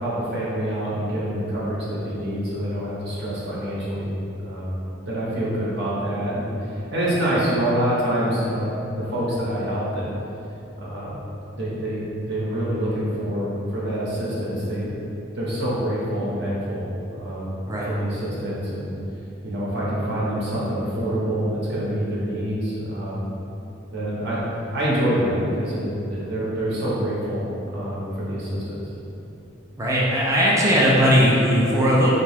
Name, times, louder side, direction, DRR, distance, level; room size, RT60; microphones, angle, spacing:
voice 1, 0.0-4.1 4.4-4.8 5.1-10.1 10.8-11.1 11.5-15.0 15.3-16.8 17.2-17.5 17.8-18.9 19.4-23.2 23.9-24.4 24.7-27.4 27.7-28.8, equal, 60° right, -7 dB, 0.7 m, -26 dB
voice 2, 29.8-32.1, equal, 15° right, -5 dB, 0.3 m, -18 dB
2.6 x 2.2 x 3.3 m, 2.8 s
head